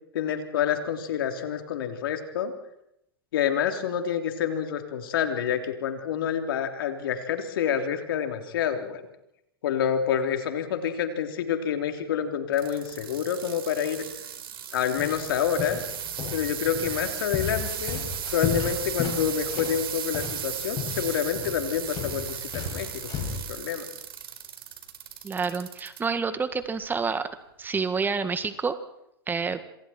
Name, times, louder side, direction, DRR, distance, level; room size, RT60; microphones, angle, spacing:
voice 1, 0.1-2.5 3.3-9.0 9.6-14.0 14.7-15.8 16.3-22.9 23.2-23.9, left 8 dB, 65° left, 5 dB, 3.5 m, -28 dB
sound 1, 12.5-26.0 26.5-27.0 27.6-27.7, right 9 dB, 70° right, 4.3 m, -36 dB
sound 2, 14.9-23.4, left 7 dB, 35° left, 6.8 m, -35 dB
voice 2, 25.2-27.3 27.6-28.8 29.3-29.6, right 5 dB, 15° right, 11 dB, 1.7 m, -28 dB
26.5 x 26.5 x 4.5 m, 0.81 s
hypercardioid pair, 110°, 12 cm